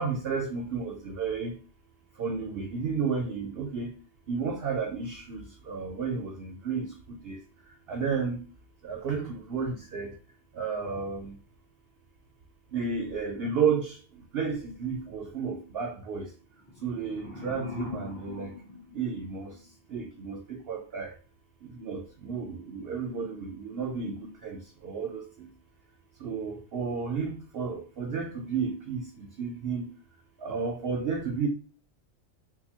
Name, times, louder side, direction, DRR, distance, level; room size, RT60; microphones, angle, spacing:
voice 1, 0.0-1.5 2.2-3.9 4.3-5.4 5.7-6.8 7.3-7.4 7.9-8.4 8.9-9.2 9.5-10.1 10.6-11.2 12.7-13.9 14.3-16.2 16.8-18.5 19.0-19.5 19.9-21.1 21.8-22.0 22.3-22.5 22.7-24.1 24.9-25.2 26.2-29.0 29.4-29.8 30.4-31.5, right 5 dB, 65° right, 0.7 m, -31 dB
sound 1, 16.5-19.6, left 3 dB, 45° left, 1.9 m, -41 dB
3.8 x 2.5 x 2.8 m
omnidirectional pair, 1.3 m